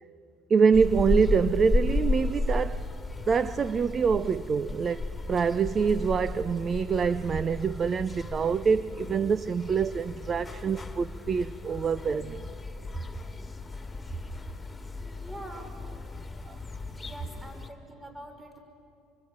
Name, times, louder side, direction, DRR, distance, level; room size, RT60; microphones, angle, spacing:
voice 1, 0.5-2.8 3.3-12.4 16.5-16.6, right 6 dB, 35° right, 0.6 m, -25 dB
sound 1, 0.7-17.7, left 2 dB, 15° left, 2.2 m, -34 dB
voice 2, 15.0-15.8 17.0-18.6, right 1 dB, 15° right, 5.6 m, -45 dB
24.5 x 24.5 x 8.8 m
supercardioid pair, 105°, 0 cm